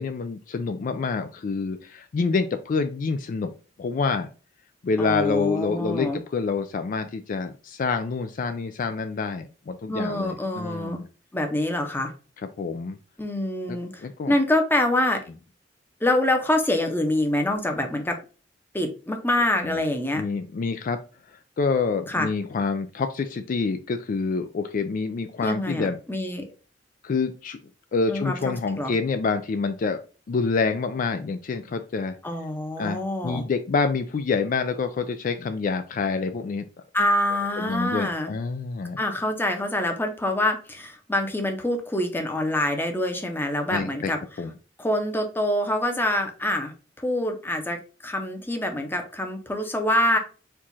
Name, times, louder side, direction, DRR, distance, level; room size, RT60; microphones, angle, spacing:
voice 1, 0.0-3.5 3.8-4.3 4.8-11.1 12.6-13.0 13.7-14.4 19.6-19.8 20.2-21.0 21.3-26.0 27.0-27.6 27.9-30.0 30.3-32.2 32.8-36.7 37.6-39.0 43.7-44.1 44.4-44.5, left 4 dB, 45° left, 8 dB, 0.3 m, -27 dB
voice 2, 5.0-6.2 9.9-11.0 11.3-12.1 13.2-15.2 16.0-18.2 18.7-20.2 22.1-22.3 25.4-26.4 28.1-28.4 28.7-28.9 32.2-33.4 36.9-38.3 39.0-44.2 44.8-50.2, left 1 dB, 10° left, 4 dB, 0.7 m, -25 dB
4.5 x 2.4 x 4.0 m, 0.35 s
head